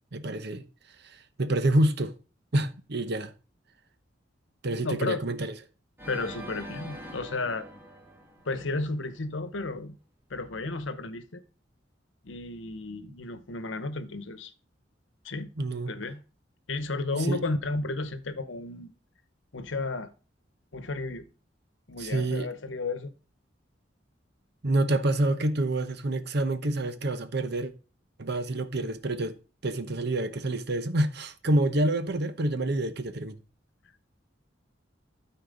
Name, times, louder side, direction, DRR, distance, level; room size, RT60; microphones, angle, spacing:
voice 1, 0.1-0.6 1.1-2.1 2.5-3.3 4.6-5.5 15.6-15.9 17.1-17.4 22.0-22.5 24.6-27.7 28.2-29.4 29.6-33.4, right 1 dB, 60° right, 0.9 m, -27 dB
voice 2, 4.8-5.2 6.1-7.7 8.5-10.0 10.3-11.4 12.2-14.5 15.2-15.5 15.9-16.2 16.7-18.9 19.5-20.1 20.7-21.3 21.9-23.1, left 3 dB, 85° left, 1.0 m, -33 dB
Organ, 6.0-9.1, equal, 10° right, 1.5 m, -44 dB
12.5 x 4.5 x 3.9 m
head